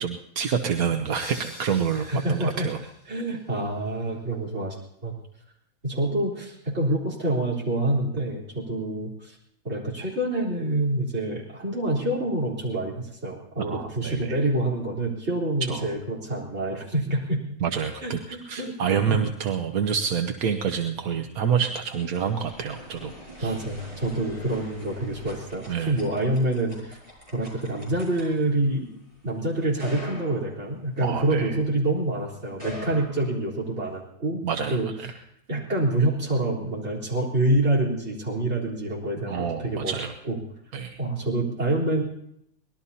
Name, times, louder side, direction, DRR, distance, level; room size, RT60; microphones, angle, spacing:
voice 1, 0.0-2.8 13.6-14.4 15.7-15.9 17.6-23.1 23.4-23.6 25.7-26.0 31.0-31.5 32.9-33.0 34.4-34.8 39.2-40.1 40.7-41.0, right 7 dB, 85° right, 5 dB, 1.4 m, -27 dB
sound 1, 1.1-3.8, left 1 dB, 55° left, 7.1 m, -46 dB
voice 2, 1.9-2.7 3.1-4.8 5.0-5.2 5.8-9.4 9.6-17.4 18.0-18.7 19.1-19.2 23.4-27.0 27.3-28.9 29.2-34.4 34.7-34.9 35.5-39.9 40.3-40.4 41.0-42.0, right 1 dB, 50° right, -1 dB, 4.2 m, -27 dB
sound 2, 21.5-31.8 32.4-33.9, left 1 dB, 25° right, 7.6 m, -45 dB
25.0 x 19.0 x 2.8 m, 0.76 s
omnidirectional pair, 1.5 m